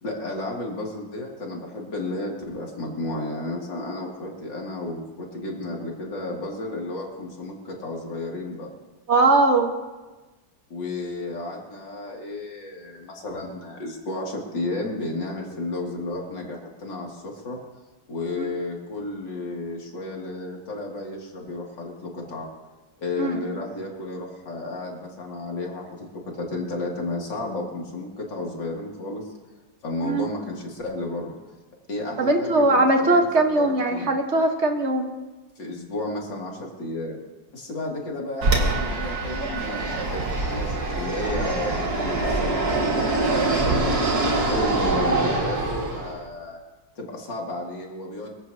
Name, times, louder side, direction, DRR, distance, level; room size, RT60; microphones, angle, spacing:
voice 1, 0.0-8.7 10.7-17.6 18.1-22.5 23.0-29.3 29.8-31.4 31.9-33.1 33.6-34.1 35.6-37.2 37.5-46.6 47.0-48.3, left 2 dB, 80° left, -1 dB, 3.3 m, -32 dB
voice 2, 9.1-9.7 18.4-18.5 23.2-23.4 30.0-30.3 32.2-35.1, right 2 dB, 40° right, 4 dB, 1.6 m, -20 dB
Fixed-wing aircraft airplane, 38.4-46.2, right 2 dB, 60° right, 2.5 m, -24 dB
23.5 x 15.0 x 2.9 m, 1.2 s
omnidirectional pair, 1.9 m